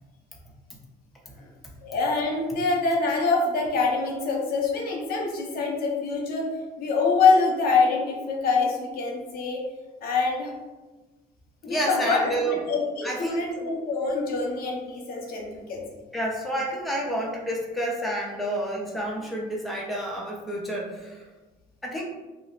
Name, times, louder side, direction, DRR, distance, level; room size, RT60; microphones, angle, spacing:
voice 1, 1.8-6.5 6.8-9.7 10.0-10.5 11.6-15.8, left 4 dB, 60° left, 0 dB, 0.8 m, -25 dB
voice 2, 11.6-12.6 13.0-13.5 16.1-21.2 21.8-22.0, right 1 dB, ahead, -3 dB, 0.5 m, -29 dB
2.4 x 2.1 x 3.8 m, 1.2 s
cardioid pair, 110°, 17 cm